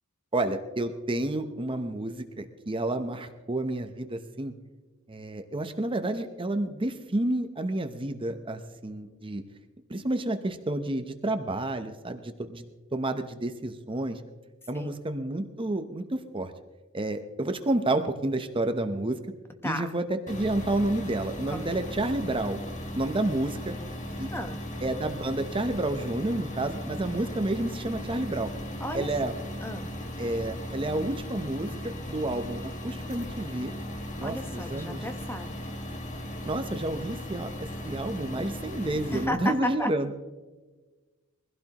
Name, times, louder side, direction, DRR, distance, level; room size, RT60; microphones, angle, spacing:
voice 1, 0.3-4.5 5.1-9.4 9.9-14.2 14.7-16.5 16.9-19.2 19.6-22.6 22.9-23.7 24.2-24.3 24.8-28.5 28.9-29.3 30.2-33.7 34.2-35.1 36.4-37.5 37.8-40.1, right 2 dB, 25° right, 7 dB, 0.8 m, -30 dB
voice 2, 19.6-19.9 21.5-21.7 24.3-24.6 28.8-29.1 29.6-29.9 34.2-35.5 39.1-39.9, left 1 dB, 10° left, 7 dB, 1.0 m, -33 dB
sound 1, 20.3-39.3, equal, 35° left, 1.7 m, -37 dB
23.0 x 16.0 x 3.0 m, 1.3 s
head